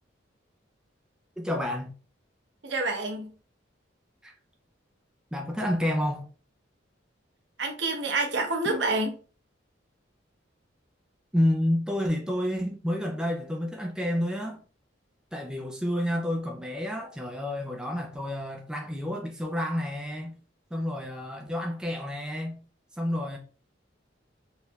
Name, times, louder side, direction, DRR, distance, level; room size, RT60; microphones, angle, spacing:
voice 1, 1.4-1.9 4.2-4.3 5.3-6.3 8.6-8.8 11.3-14.6 15.3-20.4 20.7-22.6 23.0-23.4, left 1 dB, 5° right, 0.4 m, -29 dB
voice 2, 2.6-3.3 7.6-9.1, right 2 dB, 65° right, 0.9 m, -28 dB
4.3 x 3.2 x 2.3 m
head